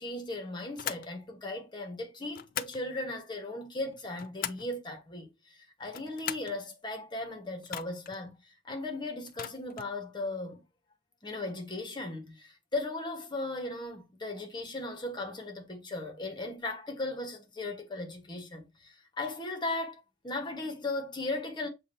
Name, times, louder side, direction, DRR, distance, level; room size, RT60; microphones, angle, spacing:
voice 1, 0.0-10.6 11.2-21.7, left 2 dB, 25° left, 1.2 m, -37 dB
sound 1, 0.8-1.1 2.3-2.8 3.9-4.7 5.8-6.6 7.6-8.2 9.3-9.9, left 10 dB, 45° left, 0.4 m, -39 dB
7.2 x 2.6 x 2.6 m
head